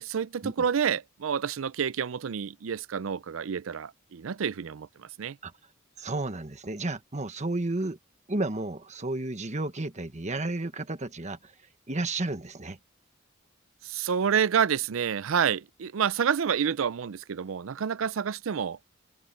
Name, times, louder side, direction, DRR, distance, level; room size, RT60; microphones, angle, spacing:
voice 1, 0.0-5.4 13.8-18.8, right 7 dB, 90° right, 0.5 m, -28 dB
voice 2, 6.0-8.0 8.3-11.5 11.9-12.8, right 2 dB, 35° right, 1.3 m, -32 dB
open air
head